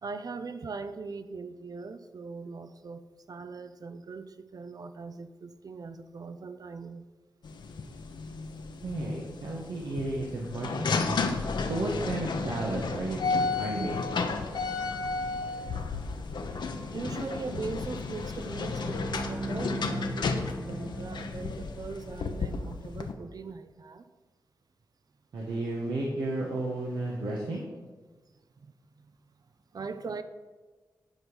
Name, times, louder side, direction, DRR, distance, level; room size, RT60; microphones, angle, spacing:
voice 1, 0.0-7.1 15.7-15.8 16.9-24.0 28.6-29.1 29.7-30.2, right 4 dB, 55° right, 11 dB, 0.7 m, -40 dB
sound 1, 7.4-23.1, left 4 dB, 80° left, 0.9 m, -33 dB
voice 2, 8.8-11.2 11.7-14.1 25.3-27.6, right 2 dB, 90° right, -3 dB, 1.5 m, -33 dB
Bowed string instrument, 18.3-21.9, right 2 dB, 15° right, 1.0 m, -38 dB
10.5 x 5.4 x 6.3 m, 1.3 s
cardioid pair, 70°, 8 cm